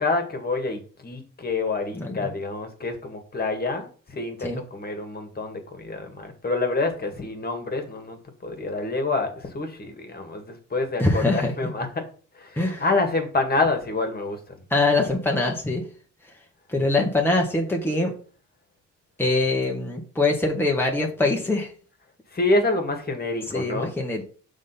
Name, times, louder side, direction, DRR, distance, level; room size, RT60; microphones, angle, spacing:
voice 1, 0.0-12.1 12.3-14.4 22.3-23.9, left 3 dB, 30° left, 6 dB, 1.9 m, -27 dB
voice 2, 1.9-2.3 4.4-4.6 11.0-11.5 12.6-12.8 14.7-15.8 16.7-18.1 19.2-21.7 23.5-24.2, left 2 dB, 5° left, 0 dB, 1.4 m, -23 dB
6.2 x 3.7 x 5.7 m, 0.41 s
cardioid pair, 90°, 30 cm